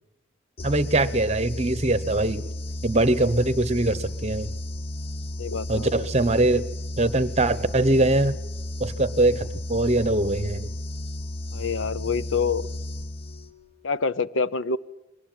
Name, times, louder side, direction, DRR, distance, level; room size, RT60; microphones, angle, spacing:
sound 1, 0.6-13.7, left 1 dB, 30° left, 0.8 m, -33 dB
voice 1, 0.6-2.4 2.8-4.5 5.7-6.7 7.0-8.3 8.8-10.7, right 2 dB, 35° right, 15 dB, 1.0 m, -22 dB
voice 2, 5.4-6.1 11.5-12.7 13.8-14.8, left 5 dB, 80° left, 15 dB, 0.8 m, -26 dB
22.5 x 19.5 x 9.2 m, 0.96 s
head